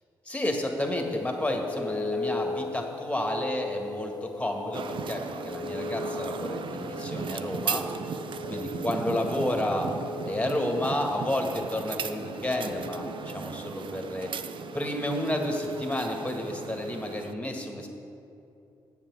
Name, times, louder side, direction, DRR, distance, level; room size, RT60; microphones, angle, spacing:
voice 1, 0.3-7.8 8.5-9.9 10.2-14.3 14.7-17.9, left 1 dB, 15° left, 2 dB, 1.8 m, -31 dB
sound 1, 0.8-17.2, left 3 dB, 45° left, 0.5 m, -39 dB
sound 2, 4.7-17.3, right 6 dB, 60° right, 0.5 m, -37 dB
7.9 x 7.5 x 6.2 m, 2.7 s
supercardioid pair, 45°, 9 cm